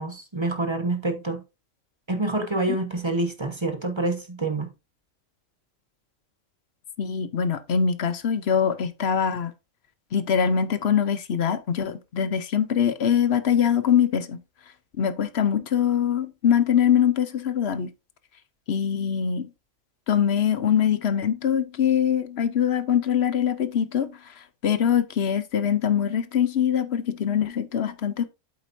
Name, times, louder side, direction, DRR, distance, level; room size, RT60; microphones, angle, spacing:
voice 1, 0.0-1.4 2.1-4.7, right 2 dB, 20° right, 1.2 m, -27 dB
voice 2, 7.0-9.5 10.1-14.4 15.0-17.9 18.7-19.5 20.1-24.2 24.6-28.3, left 8 dB, 55° left, 1.0 m, -23 dB
8.4 x 7.7 x 2.6 m
omnidirectional pair, 1.4 m